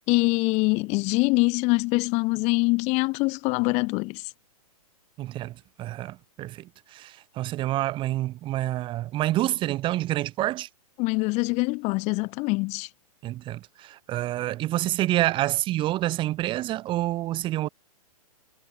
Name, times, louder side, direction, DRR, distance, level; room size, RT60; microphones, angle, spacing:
voice 1, 0.1-4.3 11.0-12.9, left 26 dB, 35° left, 1.8 m, -24 dB
voice 2, 5.2-10.7 13.2-17.7, right 15 dB, 25° right, 1.0 m, -28 dB
hypercardioid pair, 120°, 19 cm